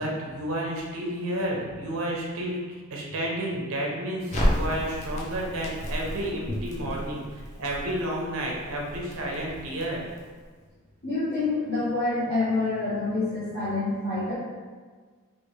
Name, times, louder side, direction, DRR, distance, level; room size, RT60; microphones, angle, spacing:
voice 1, 0.0-2.6 2.9-10.0, right 1 dB, 80° right, -1 dB, 0.7 m, -31 dB
Crackle, 4.3-10.4, equal, 35° left, 0.5 m, -32 dB
voice 2, 11.0-14.3, left 3 dB, 75° left, -14 dB, 1.1 m, -27 dB
3.4 x 2.5 x 3.1 m, 1.5 s
head